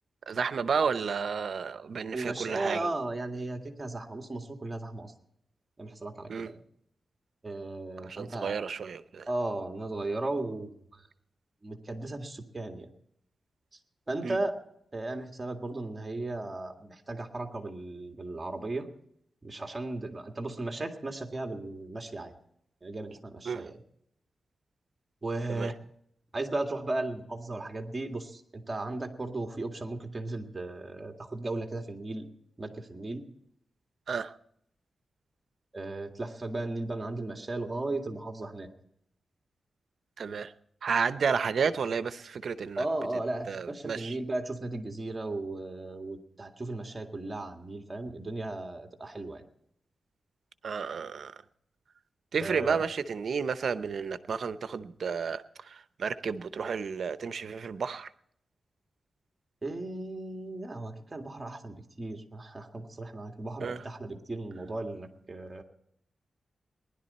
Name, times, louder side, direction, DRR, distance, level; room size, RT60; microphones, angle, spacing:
voice 1, 0.3-2.9 6.3-6.5 8.0-9.3 14.2-14.4 23.5-23.7 25.5-25.7 34.1-34.3 40.2-40.5 40.8-42.8 43.5-44.1 50.6-51.4 52.3-58.1 63.6-63.8, right 6 dB, 70° right, 12 dB, 0.7 m, -31 dB
voice 2, 2.1-5.1 5.8-6.6 7.4-8.7 9.3-11.1 11.6-12.9 14.1-14.5 14.9-18.9 19.4-22.4 22.8-23.8 25.2-25.7 26.3-32.3 32.6-33.3 35.7-38.7 42.8-49.4 52.4-52.8 59.6-65.6, right 2 dB, 25° right, 4 dB, 2.0 m, -36 dB
19.5 x 11.5 x 4.2 m, 0.72 s
wide cardioid pair, 95°, 0 cm